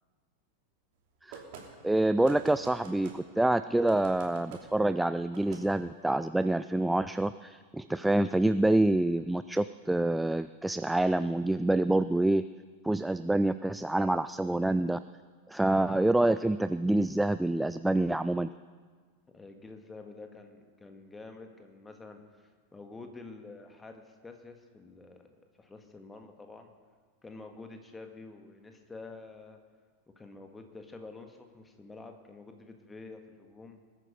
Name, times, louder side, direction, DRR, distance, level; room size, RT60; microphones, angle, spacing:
sound 1, 1.3-1.7 2.2-3.2 3.9-4.6 5.3-5.6, right 6 dB, 50° right, 2.7 m, -46 dB
voice 1, 1.8-12.5 12.8-15.0 15.5-18.5, right 1 dB, 5° right, 13 dB, 0.3 m, -27 dB
voice 2, 19.3-22.2 22.7-25.3 25.6-26.7 27.2-29.6 30.1-33.8, left 3 dB, 10° left, 5 dB, 1.7 m, -48 dB
20.5 x 9.1 x 5.2 m, 1.5 s
figure-of-eight pair, 90°, 0 cm